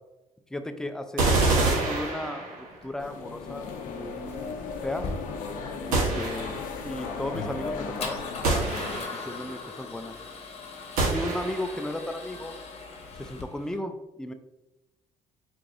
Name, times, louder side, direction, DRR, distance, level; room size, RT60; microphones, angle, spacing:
voice 1, 0.5-4.6 4.8-5.1 5.9-8.7 9.1-10.2 11.0-12.5 13.2-14.3, left 1 dB, 5° left, 7 dB, 0.3 m, -35 dB
sound 1, 1.2-2.8 5.9-6.8 8.4-9.4 11.0-11.8, right 3 dB, 80° right, 1.0 m, -26 dB
Male speech man speaking / Car / Engine starting, 2.7-13.8, left 4 dB, 45° left, 0.8 m, -41 dB
sound 2, 3.0-9.0, left 4 dB, 80° left, 0.5 m, -36 dB
4.6 x 2.5 x 2.5 m, 0.99 s
supercardioid pair, 75°, 14 cm